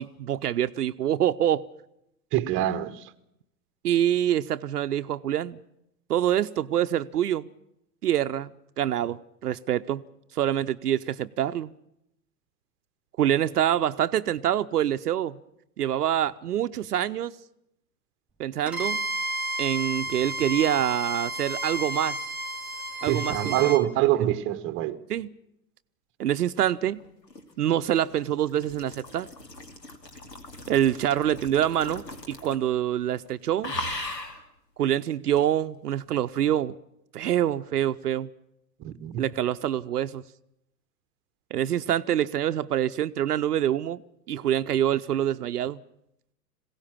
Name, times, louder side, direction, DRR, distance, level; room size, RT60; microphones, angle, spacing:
voice 1, 0.0-1.6 3.8-5.6 6.1-7.5 8.0-8.5 8.8-10.0 10.3-11.7 13.2-15.4 15.8-17.3 18.4-19.0 19.6-22.2 23.0-23.6 25.1-25.3 26.2-27.0 27.6-29.3 30.7-33.7 34.8-36.7 37.1-38.3 39.2-40.2 41.5-44.0 44.3-45.8, right 11 dB, 70° right, 0.7 m, -26 dB
voice 2, 2.3-3.1 23.0-25.0 38.8-39.2, right 14 dB, 25° right, 1.0 m, -25 dB
Bowed string instrument, 18.7-23.8, right 1 dB, ahead, 1.8 m, -32 dB
sound 1, 27.0-32.7 33.0-33.3 33.6-34.4 35.4-35.5, left 2 dB, 85° left, 2.6 m, -38 dB
21.0 x 17.0 x 7.2 m
figure-of-eight pair, 105°, 48 cm